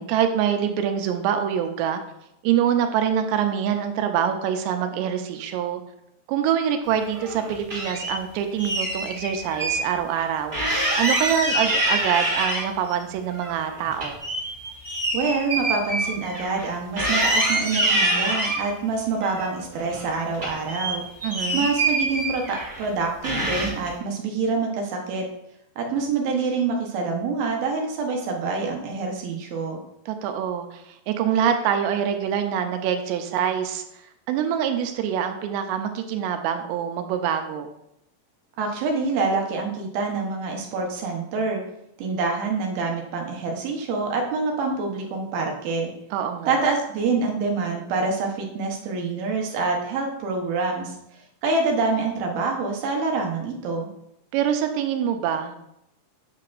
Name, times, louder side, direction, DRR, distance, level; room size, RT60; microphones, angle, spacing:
voice 1, 0.0-2.0 2.4-5.8 6.3-14.2 21.2-21.7 30.1-33.8 34.3-37.7 46.1-46.5 54.3-55.6, right 9 dB, 90° right, 6 dB, 2.8 m, -25 dB
sound 1, 7.1-8.1 8.6-9.8 10.1-10.2 10.5-12.9 13.3-16.7 17.0-18.6 19.2-20.1 20.3-22.9 23.2-23.9, right 1 dB, 30° right, 1.1 m, -25 dB
voice 2, 15.1-21.0 21.5-25.2 25.8-29.8 38.6-41.6 42.0-45.9 46.5-50.9 51.4-53.9, right 4 dB, 70° right, 1 dB, 2.6 m, -26 dB
8.4 x 6.6 x 2.5 m, 0.79 s
omnidirectional pair, 4.9 m